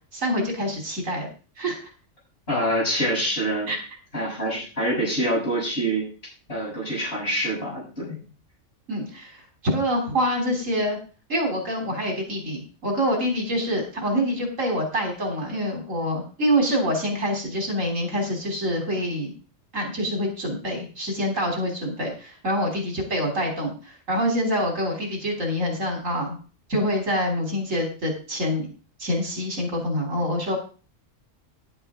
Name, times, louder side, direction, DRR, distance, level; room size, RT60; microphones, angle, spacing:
voice 1, 0.1-1.3 1.6-1.9 3.7-3.8 8.9-11.0 11.3-19.3 19.7-26.4 26.7-28.7 29.0-30.6, equal, 75° right, 1 dB, 3.8 m, -26 dB
voice 2, 2.5-3.7 4.1-6.1 6.5-8.2, right 1 dB, 50° left, -5 dB, 7.6 m, -25 dB
11.0 x 11.0 x 3.7 m, 0.36 s
omnidirectional pair, 1.3 m